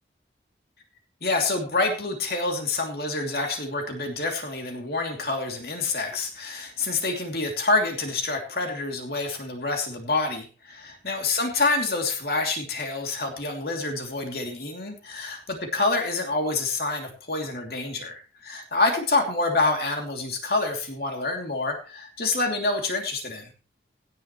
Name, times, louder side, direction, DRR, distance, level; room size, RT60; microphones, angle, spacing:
voice 1, 1.2-23.5, left 3 dB, 60° left, 2 dB, 2.9 m, -27 dB
17.5 x 10.5 x 3.1 m, 0.36 s
head